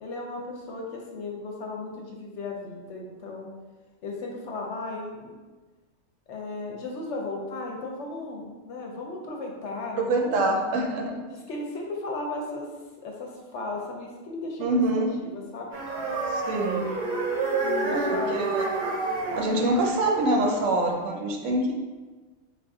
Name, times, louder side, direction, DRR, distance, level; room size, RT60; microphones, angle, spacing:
voice 1, 0.0-3.5 4.0-5.4 6.3-10.5 11.3-12.7 13.0-15.7 17.6-18.5, left 2 dB, 65° left, 0 dB, 0.8 m, -35 dB
voice 2, 10.0-11.2 14.6-15.1 16.3-16.8 17.9-18.0 18.3-18.7 19.3-21.7, right 2 dB, 75° right, 1 dB, 0.9 m, -25 dB
sound 1, 15.7-20.9, right 3 dB, 50° right, 0.5 m, -29 dB
3.5 x 2.5 x 3.5 m, 1.3 s
omnidirectional pair, 1.4 m